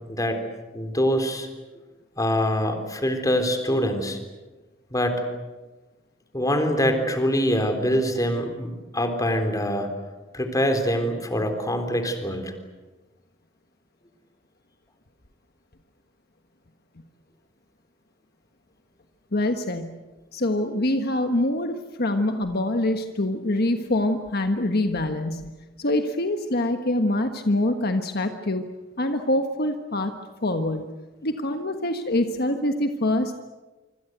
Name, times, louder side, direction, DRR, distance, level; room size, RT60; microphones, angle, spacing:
voice 1, 0.7-1.5 2.2-4.2 4.9-5.2 6.3-9.9 10.3-12.5, equal, 20° left, 7 dB, 3.7 m, -24 dB
voice 2, 19.3-20.0 20.3-25.5 25.8-28.7 29.0-30.1 30.4-30.8 31.2-33.3, left 1 dB, 55° left, 6 dB, 1.4 m, -25 dB
25.5 x 25.5 x 8.1 m, 1.2 s
head